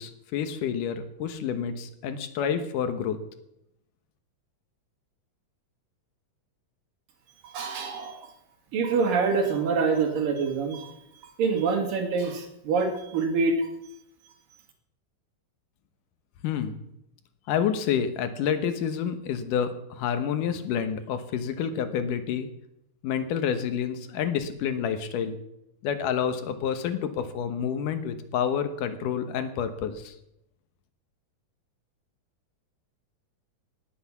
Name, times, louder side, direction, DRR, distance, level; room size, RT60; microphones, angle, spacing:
voice 1, 0.0-3.2 16.4-16.8 17.5-22.5 23.0-25.4 25.8-30.1, left 8 dB, 75° left, 9 dB, 2.7 m, -28 dB
voice 2, 7.4-8.2 8.7-11.0 11.4-13.7, right 4 dB, 80° right, 3 dB, 4.1 m, -26 dB
18.5 x 8.1 x 7.2 m, 0.82 s
omnidirectional pair, 3.9 m